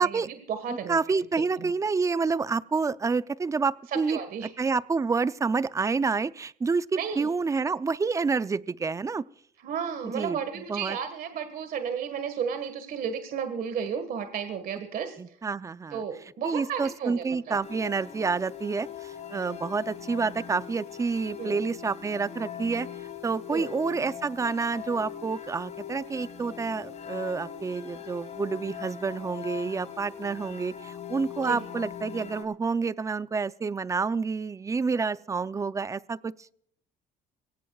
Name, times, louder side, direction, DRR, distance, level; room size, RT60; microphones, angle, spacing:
voice 1, 0.0-1.0 1.6-1.7 3.9-4.5 7.0-7.3 9.6-15.4 15.9-17.6 21.4-21.6 23.5-23.7 31.4-31.6, right 7 dB, 60° right, 8 dB, 1.6 m, -33 dB
voice 2, 0.7-4.2 4.6-9.2 10.1-10.4 10.7-11.0 15.2-16.0 16.4-22.9 23.2-36.3, right 4 dB, 20° right, 17 dB, 0.5 m, -28 dB
sound 1, 17.6-32.4, left 8 dB, 40° left, 4.0 m, -41 dB
23.0 x 17.5 x 2.4 m, 0.65 s
cardioid pair, 110°, 17 cm